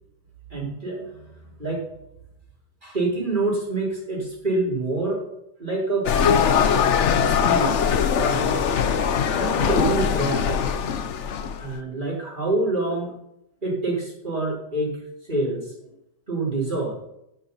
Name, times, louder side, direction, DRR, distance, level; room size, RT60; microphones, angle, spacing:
voice 1, 0.5-1.2 1.6-1.8 2.8-5.2 5.6-6.1 7.1-7.8 8.1-8.6 9.1-10.6 11.6-13.1 13.6-15.0 15.3-15.7 16.3-17.0, right 2 dB, 20° right, -3 dB, 3.9 m, -26 dB
sound 1, 6.1-11.7, left 7 dB, 85° left, 0.6 m, -21 dB
10.0 x 9.6 x 5.5 m, 0.81 s
omnidirectional pair, 2.2 m